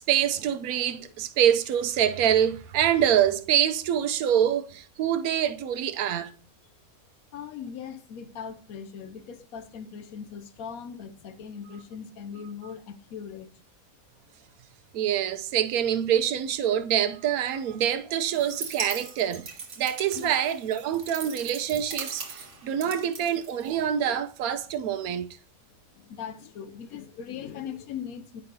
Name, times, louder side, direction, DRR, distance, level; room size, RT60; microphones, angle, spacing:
voice 1, 0.0-6.3 14.9-19.5 19.8-25.3, right 10 dB, 85° right, 1.1 m, -25 dB
voice 2, 7.3-13.5 20.2-20.4 22.7-23.0 25.9-28.4, left 7 dB, 75° left, 1.1 m, -40 dB
sound 1, 18.3-24.0, right 5 dB, 55° right, 1.3 m, -40 dB
9.3 x 5.4 x 2.7 m
omnidirectional pair, 1.5 m